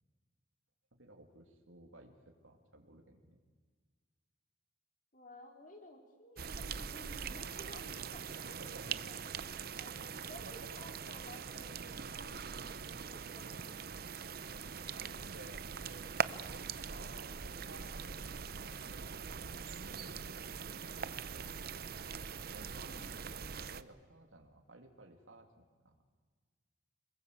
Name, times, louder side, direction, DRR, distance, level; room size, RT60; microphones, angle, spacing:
voice 1, 0.9-3.4 8.5-9.1 10.3-10.7 14.3-16.2 16.5-21.4 22.5-26.0, right 1 dB, 85° right, 3 dB, 2.9 m, -56 dB
voice 2, 5.1-9.4 9.8-13.8 23.0-23.3, left 1 dB, 40° left, 3 dB, 4.0 m, -55 dB
sound 1, 6.4-23.8, right 6 dB, 50° right, 0.7 m, -42 dB
26.5 x 21.0 x 8.4 m, 1.5 s
head